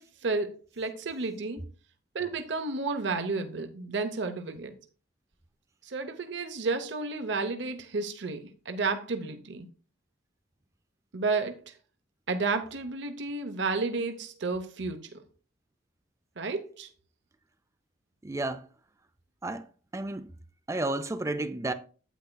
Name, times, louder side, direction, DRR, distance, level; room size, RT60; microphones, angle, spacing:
voice 1, 0.0-1.6 2.1-4.7 5.8-9.7 11.1-11.8 12.3-15.2 16.4-16.9, right 3 dB, 70° right, 0.8 m, -32 dB
voice 2, 18.2-18.7 19.4-20.3 20.7-21.7, right 2 dB, 15° right, 0.4 m, -32 dB
9.1 x 8.9 x 2.3 m
head